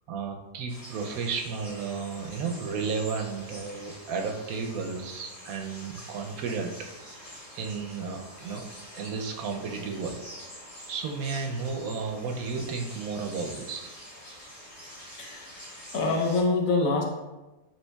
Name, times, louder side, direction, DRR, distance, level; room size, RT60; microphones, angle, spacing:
voice 1, 0.1-7.2 7.5-8.7 8.9-10.2 10.9-13.9, right 5 dB, 75° right, 3 dB, 1.0 m, -33 dB
sound 1, 0.7-16.4, equal, 25° left, 1.6 m, -46 dB
voice 2, 15.1-17.0, left 3 dB, 65° left, 0 dB, 1.0 m, -26 dB
7.3 x 2.9 x 2.2 m, 1.1 s
omnidirectional pair, 1.6 m